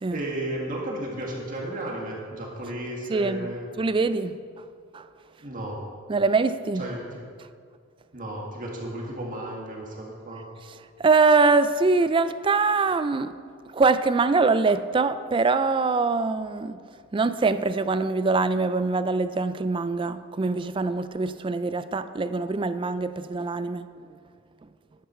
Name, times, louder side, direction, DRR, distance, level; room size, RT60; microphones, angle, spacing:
voice 1, 0.1-3.7 5.4-5.8 6.8-7.2 8.1-10.5, right 1 dB, 40° right, 1.8 m, -33 dB
voice 2, 3.1-3.5 3.8-4.4 4.9-5.1 6.1-6.9 11.0-13.4 13.7-16.8 17.1-24.0, right 4 dB, 25° right, 0.3 m, -23 dB
13.5 x 10.0 x 4.4 m
head